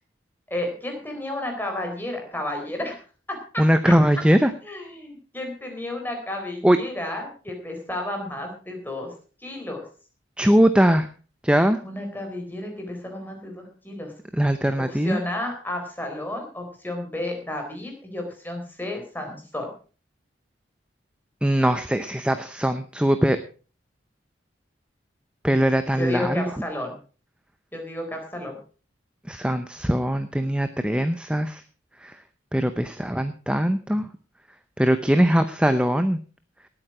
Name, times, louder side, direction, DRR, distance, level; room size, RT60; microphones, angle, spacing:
voice 1, 0.5-3.0 3.3-3.9 4.6-9.1 9.4-9.8 11.8-14.1 14.9-19.7 26.0-27.0 27.7-28.6, left 1 dB, 10° left, 3 dB, 4.0 m, -32 dB
voice 2, 3.6-4.5 6.6-6.8 10.4-11.1 11.4-11.8 14.4-15.2 21.4-23.4 25.4-26.5 29.3-31.6 32.0-32.1 32.5-34.1 34.8-36.2, equal, 5° right, 9 dB, 0.6 m, -21 dB
18.5 x 8.9 x 4.9 m, 0.38 s
head